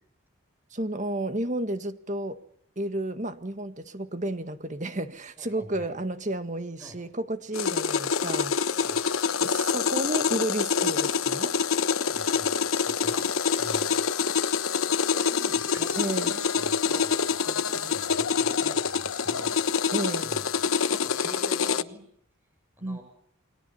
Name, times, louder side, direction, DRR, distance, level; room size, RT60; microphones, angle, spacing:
voice 1, 0.7-2.4 2.7-8.6 9.4-11.5 15.9-16.3 19.9-20.4 22.8-23.0, right 1 dB, 35° right, 1.7 m, -32 dB
voice 2, 5.4-5.9 6.8-6.9 8.7-9.0 12.0-13.9 14.9-19.6 20.2-20.5 20.9-22.0 22.8-23.0, equal, 10° right, 7.8 m, -44 dB
sound 1, 7.5-21.8, left 6 dB, 80° left, 1.1 m, -26 dB
29.5 x 22.5 x 5.7 m
head